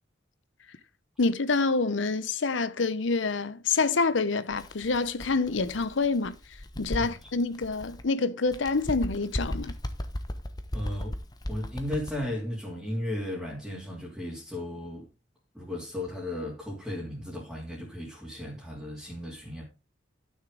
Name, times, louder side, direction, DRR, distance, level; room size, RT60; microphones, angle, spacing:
voice 1, 1.2-6.3 6.8-9.7, left 4 dB, 75° left, 0.8 m, -27 dB
Bird, 4.5-8.1 8.5-12.3, left 1 dB, 20° left, 0.9 m, -37 dB
voice 2, 6.9-7.3 10.7-11.2 11.5-15.1 15.5-19.6, left 1 dB, ahead, 2.6 m, -35 dB
12.0 x 6.4 x 3.8 m
head